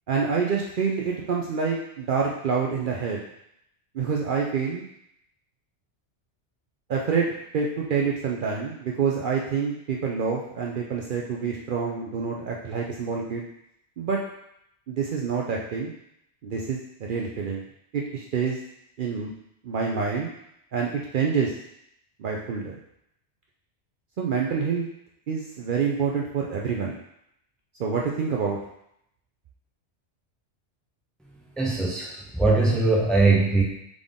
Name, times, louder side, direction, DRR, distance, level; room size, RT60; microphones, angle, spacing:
voice 1, 0.1-3.2 3.9-4.8 6.9-13.4 14.0-14.2 14.9-15.9 16.4-17.6 17.9-18.6 19.0-19.3 19.6-20.3 20.7-21.5 22.2-22.8 24.2-24.9 25.3-27.0 27.8-28.6, right 5 dB, 60° right, -1 dB, 0.6 m, -27 dB
voice 2, 31.6-33.6, right 3 dB, ahead, -3 dB, 0.6 m, -21 dB
3.7 x 3.7 x 3.6 m, 0.78 s
omnidirectional pair, 1.1 m